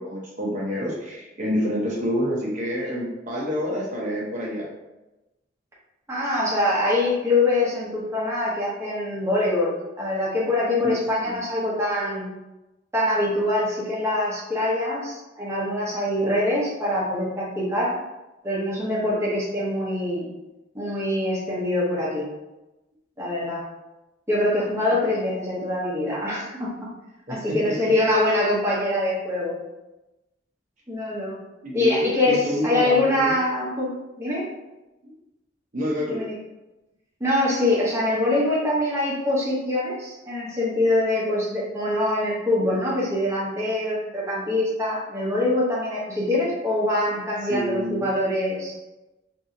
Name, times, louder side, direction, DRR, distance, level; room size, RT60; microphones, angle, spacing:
voice 1, 0.0-4.7 10.8-11.4 24.9-25.0 27.3-27.8 31.6-33.3 35.0-35.1 35.7-36.2 47.5-48.1, equal, 45° right, -5 dB, 0.7 m, -28 dB
voice 2, 6.1-12.3 12.9-18.0 18.4-20.3 20.7-22.3 23.2-23.6 24.3-26.9 27.3-29.6 30.9-31.4 31.7-33.9 34.2-34.5 36.1-36.3 37.2-48.8, left 1 dB, 15° right, -6 dB, 0.9 m, -24 dB
2.8 x 2.7 x 3.6 m, 1.0 s
head